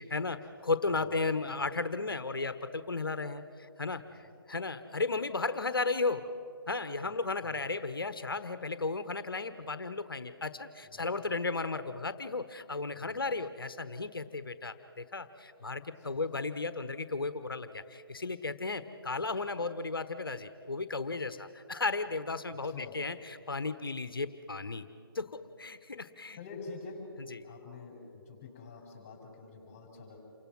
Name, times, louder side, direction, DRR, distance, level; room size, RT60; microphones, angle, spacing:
voice 1, 0.0-6.3 6.7-24.9 25.1-26.4 27.3-27.5, left 3 dB, 65° left, 12 dB, 1.3 m, -35 dB
voice 2, 1.0-1.7 4.2-4.3 7.1-7.2 7.4-7.7 10.8-11.3 12.9-13.4 16.0-16.3 22.5-23.0 26.3-27.1 27.4-30.2, left 4 dB, 20° left, 1 dB, 6.5 m, -48 dB
28.5 x 24.5 x 6.2 m, 2.7 s
figure-of-eight pair, 145°, 13 cm